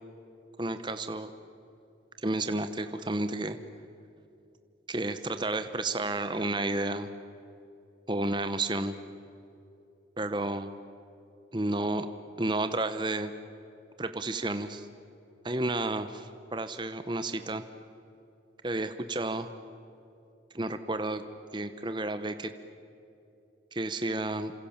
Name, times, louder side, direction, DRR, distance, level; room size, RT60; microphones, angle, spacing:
voice 1, 0.6-1.3 2.2-3.6 4.9-7.1 8.1-8.9 10.2-10.7 11.5-12.1 12.4-13.3 14.0-14.9 15.4-17.6 18.6-19.5 20.5-21.2 21.5-22.5 23.7-24.5, right 2 dB, 25° right, 9 dB, 1.0 m, -31 dB
29.0 x 26.5 x 7.3 m, 2.7 s
head